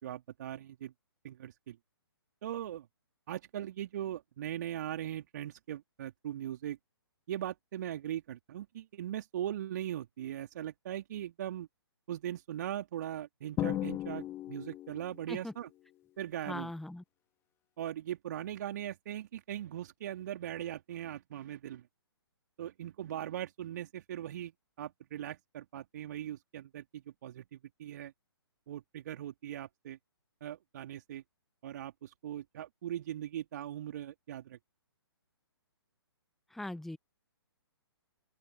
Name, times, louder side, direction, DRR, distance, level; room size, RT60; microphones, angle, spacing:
voice 1, 0.0-0.9 1.2-1.8 2.4-2.9 3.3-6.8 7.3-11.7 12.1-15.7 16.2-16.7 17.8-21.9 22.6-24.5 24.8-28.1 28.7-30.0 30.4-31.2 31.6-34.6, right 11 dB, 45° right, 3.0 m, -40 dB
Drum, 13.6-15.3, left 14 dB, 20° left, 1.8 m, -36 dB
voice 2, 16.5-17.0 36.5-37.0, left 1 dB, ahead, 1.1 m, -40 dB
open air
figure-of-eight pair, 130°, 14 cm